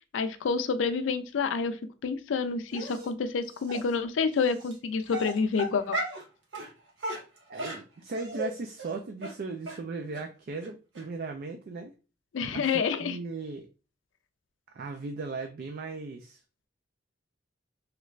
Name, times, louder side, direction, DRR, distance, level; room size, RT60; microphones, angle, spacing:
voice 1, 0.1-6.0 12.3-13.2, left 5 dB, 85° left, 9 dB, 0.4 m, -28 dB
Dog, 2.7-3.1 3.7-3.8 4.6-4.7 5.1-6.2 6.5-6.7 7.0-8.5 8.8-8.9 9.2-9.3 9.7-9.8 10.1-10.2 10.6-10.7 10.9-11.0, right 1 dB, 80° right, 1.2 m, -35 dB
voice 2, 7.5-11.9 12.5-13.7 14.7-16.4, right 3 dB, 55° right, 5 dB, 0.4 m, -37 dB
3.2 x 2.4 x 3.1 m, 0.34 s
head